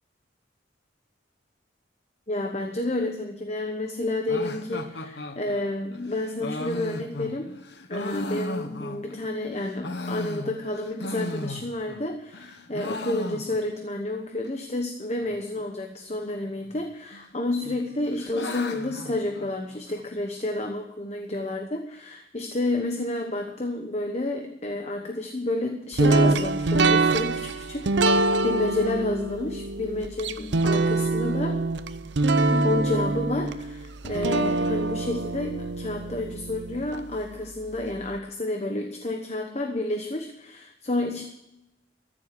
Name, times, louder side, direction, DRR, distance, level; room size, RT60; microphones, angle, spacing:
voice 1, 2.3-7.6 7.9-31.6 32.5-41.2, left 2 dB, 35° left, 4 dB, 1.1 m, -30 dB
sound 1, 4.3-9.3 9.7-12.0 12.3-13.9 14.1-14.2 14.4-14.5 15.2-15.6 16.7-17.3 17.6-20.0, left 2 dB, 65° left, 1.1 m, -36 dB
sound 2, 26.0-37.0, right 2 dB, 70° right, 0.7 m, -24 dB
14.0 x 7.6 x 9.6 m, 0.89 s
head